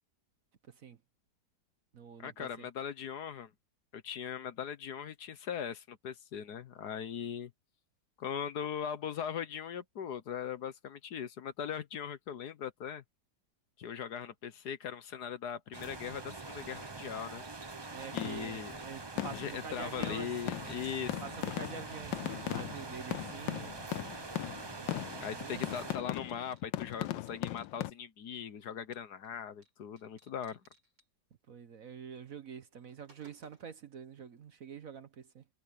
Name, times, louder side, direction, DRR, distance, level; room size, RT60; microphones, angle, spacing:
voice 1, 0.7-1.0 1.9-2.7 17.9-20.3 21.2-23.8 24.8-24.9 25.4-25.6 31.5-35.4, right 6 dB, 55° right, 1.3 m, -46 dB
voice 2, 2.2-3.5 3.9-7.5 8.2-13.0 13.8-17.4 18.1-18.7 19.3-21.2 25.2-30.6, left 8 dB, 60° left, 1.5 m, -40 dB
sound 1, 15.7-26.0, right 3 dB, 25° right, 0.5 m, -44 dB
sound 2, 15.7-19.5 19.7-23.0 25.2-25.3 25.6-27.7 28.9-29.3 29.6-29.7 30.0-31.1 32.1-32.3 32.6-33.8, right 3 dB, 85° right, 8.5 m, -65 dB
sound 3, 18.2-18.6 19.2-19.7 20.0-27.9, left 14 dB, 85° left, 1.4 m, -39 dB
omnidirectional pair, 2.0 m